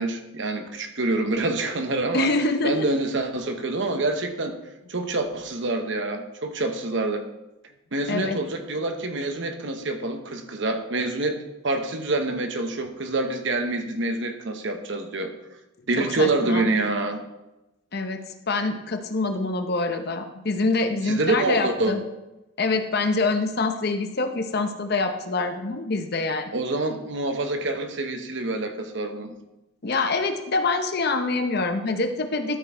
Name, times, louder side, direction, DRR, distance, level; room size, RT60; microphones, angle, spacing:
voice 1, 0.0-2.3 2.6-4.6 4.9-7.2 7.9-15.3 15.9-17.2 21.0-22.0 26.5-29.3, right 2 dB, 60° right, 5 dB, 0.9 m, -26 dB
voice 2, 2.1-2.8 8.1-8.4 16.0-16.7 17.9-22.0 22.6-26.5 29.8-32.6, left 3 dB, 50° left, 7 dB, 0.8 m, -25 dB
13.0 x 4.4 x 4.5 m, 0.96 s
head